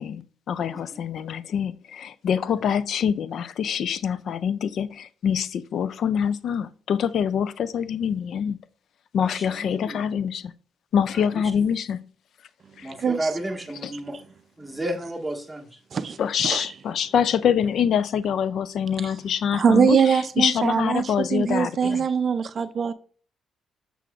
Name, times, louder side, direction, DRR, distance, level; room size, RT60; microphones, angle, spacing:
voice 1, 0.0-8.6 9.1-10.5 10.9-12.0 12.8-12.9 13.8-13.9 16.2-22.0, left 8 dB, 65° left, 0.4 m, -25 dB
voice 2, 9.2-10.1 11.1-11.7 12.8-14.2 14.6-15.8 21.9-22.0 22.6-22.7, right 1 dB, 5° right, 1.5 m, -33 dB
voice 3, 13.0-13.3 15.9-16.2 16.4-16.6 19.0-19.1 19.5-22.9, right 7 dB, 50° right, 0.4 m, -22 dB
7.5 x 6.8 x 2.4 m
cardioid pair, 90°, 0 cm